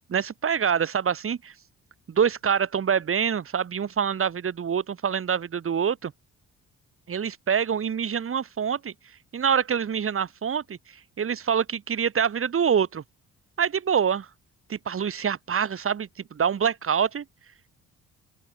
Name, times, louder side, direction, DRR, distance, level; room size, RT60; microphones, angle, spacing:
voice 1, 0.1-1.5 2.1-6.1 7.1-8.9 9.3-10.8 11.2-13.0 13.6-14.3 14.7-17.2, right 7 dB, 45° right, 2.6 m, -25 dB
open air
cardioid pair, 90°, 30 cm